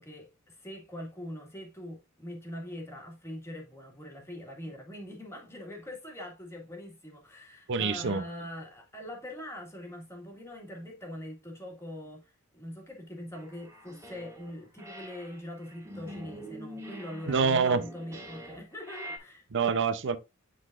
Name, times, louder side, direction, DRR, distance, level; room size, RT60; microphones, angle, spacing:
voice 1, 0.0-19.5, left 1 dB, 10° left, 1.8 m, -43 dB
voice 2, 7.7-8.2 17.3-17.8 19.5-20.2, right 5 dB, 55° right, 0.6 m, -26 dB
sound 1, 13.3-14.5 14.8-19.2, equal, 15° right, 1.7 m, -45 dB
10.0 x 4.0 x 2.5 m
head